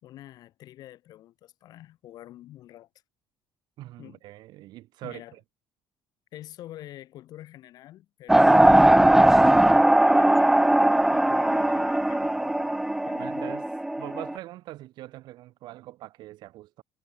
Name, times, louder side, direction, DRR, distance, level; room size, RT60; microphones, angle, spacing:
voice 1, 0.0-2.9 4.0-4.2 5.0-5.4 6.3-10.6 11.1-13.6, left 14 dB, 55° left, 5.4 m, -47 dB
voice 2, 3.8-5.4 13.2-13.7 14.0-16.8, right 16 dB, 65° right, 6.9 m, -42 dB
sound 1, 8.3-14.3, right 1 dB, 5° right, 0.5 m, -19 dB
cardioid pair, 175°, 8 cm